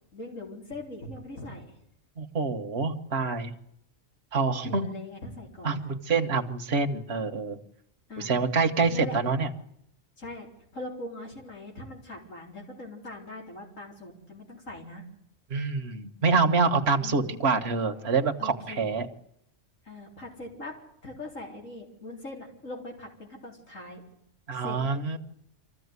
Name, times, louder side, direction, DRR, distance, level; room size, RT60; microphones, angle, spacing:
voice 1, 0.1-1.7 4.7-5.9 8.1-8.4 8.8-9.2 10.2-15.0 17.0-17.3 18.4-18.9 19.8-20.8 21.0-24.0 24.6-24.8, left 2 dB, 85° left, 0 dB, 4.4 m, -41 dB
voice 2, 2.2-3.5 4.3-4.9 5.6-7.6 8.2-9.5 15.5-19.1 24.5-25.2, right 4 dB, 55° right, 4 dB, 1.6 m, -26 dB
25.0 x 15.0 x 9.6 m, 0.75 s
omnidirectional pair, 1.3 m